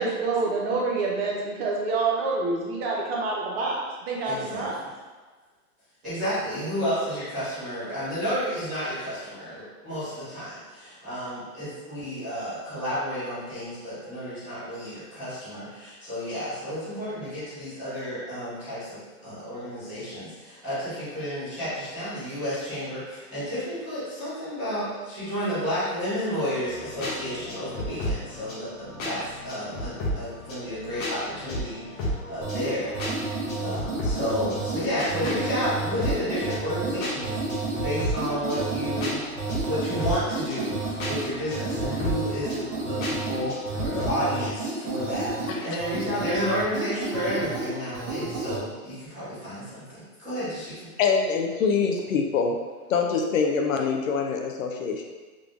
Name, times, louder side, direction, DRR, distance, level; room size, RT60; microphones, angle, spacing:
voice 1, 0.0-3.8 4.1-4.8, right 3 dB, 40° right, -3 dB, 0.9 m, -27 dB
voice 2, 4.2-4.7 6.0-39.2 39.6-50.7, equal, 5° right, -21 dB, 0.3 m, -31 dB
sound 1, 26.7-44.1, left 1 dB, 20° left, 0.8 m, -34 dB
sound 2, 32.4-48.6, right 2 dB, 90° right, 1.2 m, -31 dB
voice 3, 51.0-52.6 52.9-55.0, left 5 dB, 60° left, 2 dB, 0.6 m, -24 dB
3.7 x 3.1 x 2.5 m, 1.3 s
hypercardioid pair, 145°, 44 cm